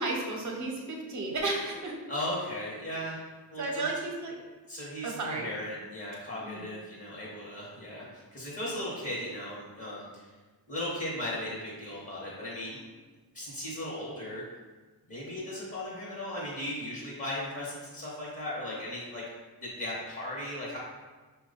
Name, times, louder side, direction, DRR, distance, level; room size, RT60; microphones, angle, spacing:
voice 1, 0.0-1.9 3.6-4.4 5.0-5.5 6.4-6.7, right 2 dB, 50° right, 0 dB, 0.9 m, -33 dB
voice 2, 2.1-3.2 3.5-3.9 4.7-10.3 10.7-12.8 13.3-14.4 15.1-19.2 19.6-20.8, left 1 dB, 35° left, -7 dB, 1.1 m, -37 dB
5.9 x 2.3 x 3.9 m, 1.3 s
wide cardioid pair, 160°, 38 cm